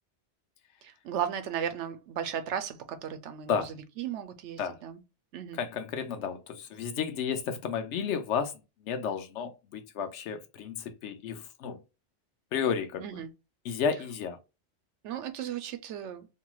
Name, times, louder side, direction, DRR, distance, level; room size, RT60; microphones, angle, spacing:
voice 1, 0.8-5.0 5.3-5.6 13.0-13.3 15.0-16.3, right 9 dB, 80° right, 0.9 m, -35 dB
voice 2, 5.5-8.5 8.8-11.8 12.5-13.0 13.6-14.4, left 7 dB, 80° left, 0.9 m, -32 dB
3.0 x 2.7 x 2.3 m
omnidirectional pair, 1.2 m